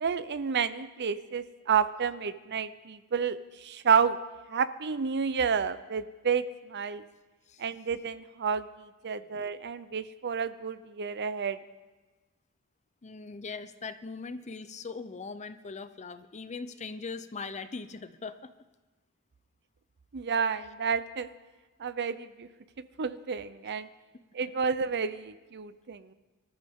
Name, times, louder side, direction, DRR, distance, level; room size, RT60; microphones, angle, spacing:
voice 1, 0.0-4.2 4.5-7.0 7.6-11.6 20.1-21.3 21.8-22.5 23.0-23.9 24.3-26.1, right 6 dB, 50° right, 14 dB, 0.6 m, -30 dB
voice 2, 13.0-18.5 23.6-23.7 24.1-24.2, left 4 dB, 30° left, 12 dB, 0.6 m, -40 dB
24.5 x 13.5 x 3.7 m, 1.2 s
head